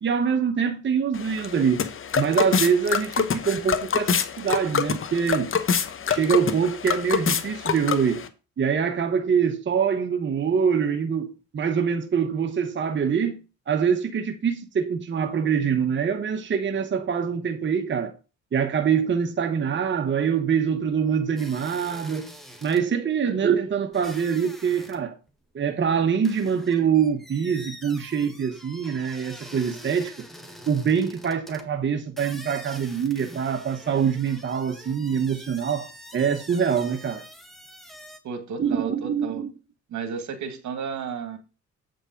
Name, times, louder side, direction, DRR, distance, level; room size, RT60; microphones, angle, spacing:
voice 1, 0.0-1.8 2.2-5.5 6.1-8.2 8.6-11.3 11.5-13.4 13.7-18.1 18.5-22.3 22.6-25.2 25.5-30.1 30.7-37.2 38.6-39.5, right 7 dB, 40° right, 1.1 m, -24 dB
sound 1, 1.1-8.3, left 6 dB, 45° left, 1.0 m, -26 dB
sound 2, 21.4-22.8 23.9-25.0 25.3-25.4 26.2-31.7 32.1-38.2, equal, ahead, 1.6 m, -45 dB
voice 2, 38.2-39.4 39.9-41.4, right 6 dB, 70° right, 1.7 m, -33 dB
8.2 x 5.2 x 5.1 m
cardioid pair, 90°, 30 cm